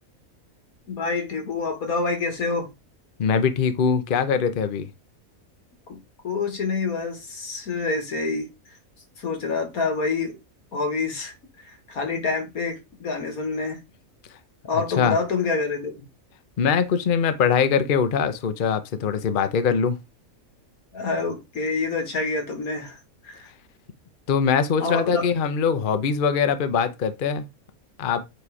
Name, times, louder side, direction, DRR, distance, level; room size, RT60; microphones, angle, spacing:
voice 1, 0.9-2.7 5.9-6.0 6.2-8.5 9.2-10.3 10.7-13.8 14.6-16.1 20.9-23.0 23.2-23.5 24.8-25.3, left 4 dB, 90° left, 2.2 m, -27 dB
voice 2, 3.2-4.9 15.0-15.2 16.6-20.0 24.3-27.5 28.0-28.2, left 6 dB, 45° left, 0.8 m, -22 dB
7.8 x 3.2 x 4.8 m
omnidirectional pair, 1.5 m